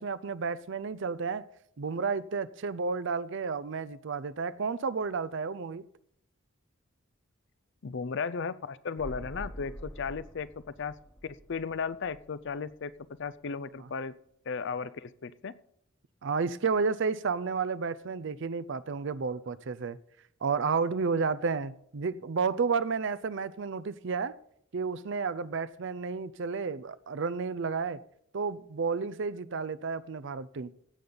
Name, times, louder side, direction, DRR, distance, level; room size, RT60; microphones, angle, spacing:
voice 1, 0.0-1.4 1.8-5.9 16.2-20.0 20.4-24.3 24.7-28.0 28.3-30.7, right 5 dB, 60° right, 0.5 m, -31 dB
voice 2, 7.8-10.5 10.8-10.9 11.2-12.9 13.2-14.1 14.5-15.5, left 5 dB, 60° left, 0.5 m, -35 dB
sound 1, 9.0-12.7 13.0-13.1, equal, 10° left, 1.1 m, -46 dB
16.5 x 7.0 x 3.9 m
head